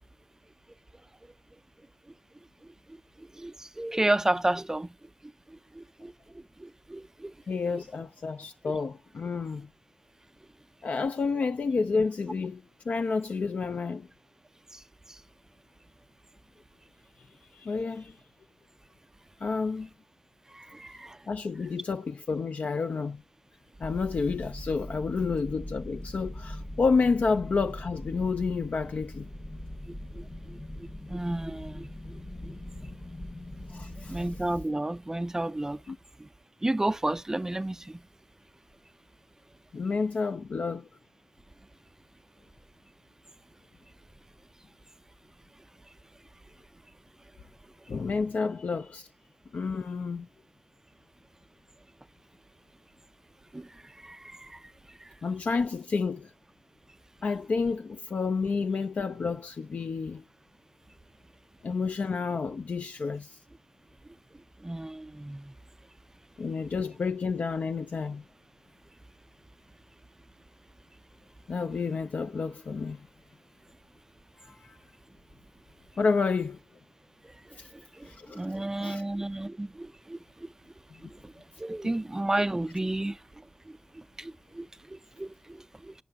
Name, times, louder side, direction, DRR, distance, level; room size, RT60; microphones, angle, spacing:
voice 1, 3.2-4.9 5.5-7.3 7.7-7.8 14.7-14.8 15.1-15.2 20.5-21.2 30.1-31.9 32.4-32.6 34.1-35.8 36.2-36.3 36.6-38.0 53.5-54.7 55.0-55.1 64.6-65.5 77.7-80.5 81.1-81.3 81.6-85.9, right 1 dB, 20° right, 0.3 m, -33 dB
voice 2, 7.5-9.7 10.8-14.1 17.5-18.1 19.4-19.9 21.3-23.2 23.8-29.3 33.7-34.2 35.9-36.0 39.7-40.9 47.9-49.1 49.5-50.3 55.2-56.3 57.2-60.2 61.6-63.4 66.4-68.2 71.5-73.0 74.4-74.8 76.0-76.6 77.6-77.7 78.0-78.4 78.8-79.0, left 4 dB, 70° left, 0.3 m, -30 dB
sound 1, 23.8-34.7, left 1 dB, 35° left, 0.8 m, -41 dB
8.6 x 6.8 x 2.3 m
cardioid pair, 50°, 3 cm